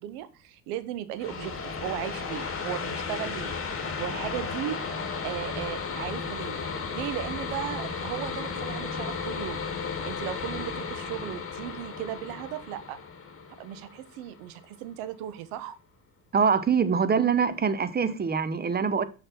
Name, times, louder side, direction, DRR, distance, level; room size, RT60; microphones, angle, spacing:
voice 1, 0.0-1.5 1.8-4.8 5.2-9.6 10.0-13.0 13.6-15.8, right 12 dB, 70° right, 1.2 m, -36 dB
sound 1, 1.2-14.6, left 5 dB, 30° left, 2.1 m, -34 dB
voice 2, 16.3-19.0, right 6 dB, 20° right, 0.9 m, -24 dB
6.6 x 5.8 x 4.3 m
hypercardioid pair, 70°, 44 cm